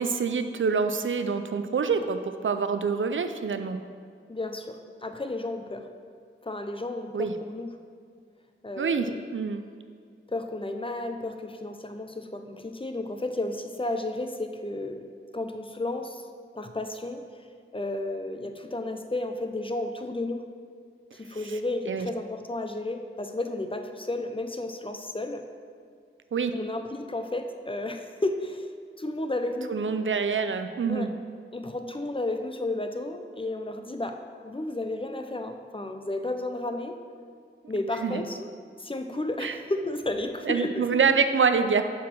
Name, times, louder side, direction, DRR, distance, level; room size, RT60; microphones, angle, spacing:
voice 1, 0.0-3.8 7.1-7.3 8.8-9.6 21.5-21.6 21.9-22.1 26.3-26.5 29.7-31.1 38.0-38.2 39.4-39.5 40.5-41.8, right 5 dB, 70° right, 9 dB, 0.5 m, -26 dB
voice 2, 4.3-5.9 6.4-7.8 8.6-9.2 10.3-15.1 15.3-16.2 16.5-17.3 17.7-20.5 21.2-25.4 26.5-28.7 29.0-29.7 30.9-31.1 31.5-37.0 37.7-38.5 38.8-40.8, left 2 dB, 25° left, 6 dB, 0.5 m, -32 dB
7.3 x 4.2 x 6.0 m, 2.2 s
wide cardioid pair, 75°, 21 cm